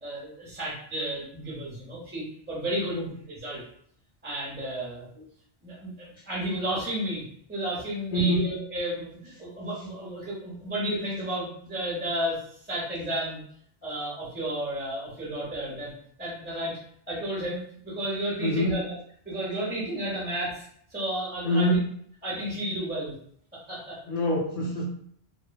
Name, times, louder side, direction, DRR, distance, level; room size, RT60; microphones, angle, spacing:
voice 1, 0.0-3.6 4.2-5.1 5.6-7.2 7.5-12.4 12.7-13.4 13.8-15.9 16.2-16.8 17.1-18.9 19.3-20.7 20.9-21.7 22.2-23.1 23.7-24.0, right 1 dB, 10° right, -7 dB, 0.6 m, -32 dB
voice 2, 8.1-8.6 18.4-18.8 21.4-21.9 24.1-24.8, equal, 35° left, -4 dB, 1.0 m, -25 dB
3.0 x 2.2 x 2.2 m, 0.64 s
omnidirectional pair, 1.1 m